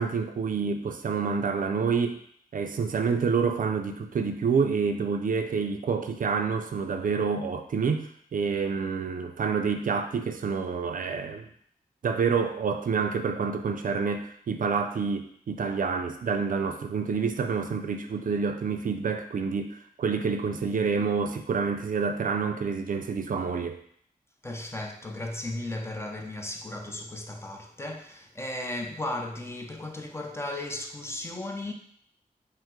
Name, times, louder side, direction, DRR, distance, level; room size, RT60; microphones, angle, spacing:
voice 1, 0.0-2.2 2.5-11.5 12.0-23.8, right 5 dB, 65° right, 0.4 m, -28 dB
voice 2, 24.4-31.7, left 1 dB, 15° left, 0.6 m, -35 dB
5.1 x 2.0 x 3.6 m
wide cardioid pair, 75°, 15 cm